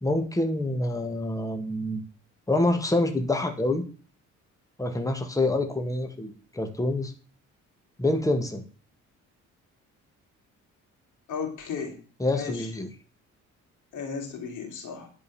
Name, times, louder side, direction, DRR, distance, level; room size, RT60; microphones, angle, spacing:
voice 1, 0.0-2.0 2.5-3.9 4.8-7.1 8.0-8.6 12.2-12.9, left 2 dB, 10° left, 5 dB, 1.9 m, -26 dB
voice 2, 11.3-12.0 12.3-12.7 13.9-15.1, left 5 dB, 85° left, 3 dB, 3.2 m, -34 dB
10.5 x 5.4 x 7.0 m, 0.37 s
cardioid pair, 90°, 30 cm